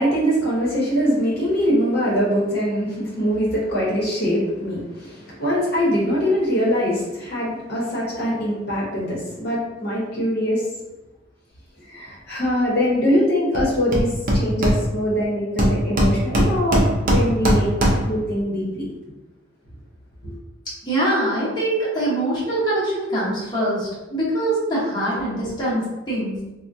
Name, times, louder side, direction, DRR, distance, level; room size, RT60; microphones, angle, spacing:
voice 1, 0.0-10.6 11.9-17.7 18.0-18.9 20.2-20.3, equal, 50° left, -6 dB, 0.9 m, -22 dB
Hammer, 13.5-13.6 13.9-15.2 15.6-18.2, equal, 45° right, 0.6 m, -20 dB
voice 2, 20.8-26.5, right 1 dB, 20° left, -9 dB, 0.9 m, -23 dB
3.4 x 2.1 x 2.6 m, 1.0 s
head